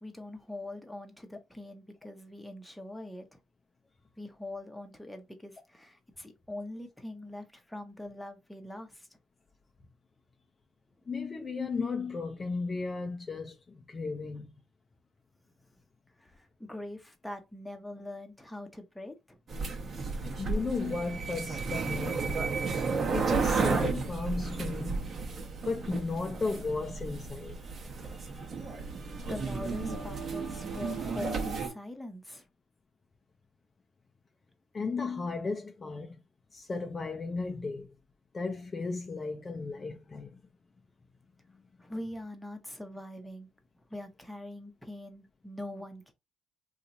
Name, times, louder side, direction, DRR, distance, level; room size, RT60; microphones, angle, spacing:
voice 1, 0.0-3.4 4.2-9.1 16.2-19.4 28.8-28.9 29.3-32.4 41.8-43.5 43.9-46.1, left 1 dB, 5° left, 0.9 m, -42 dB
voice 2, 11.1-14.5 20.4-22.3 23.1-27.7 28.1-28.3 34.7-36.2 36.5-37.9 38.3-40.4, left 4 dB, 35° left, 0.5 m, -35 dB
sound 1, 19.5-31.7, right 4 dB, 50° right, 0.9 m, -33 dB
2.8 x 2.4 x 3.9 m
cardioid pair, 90°, 0 cm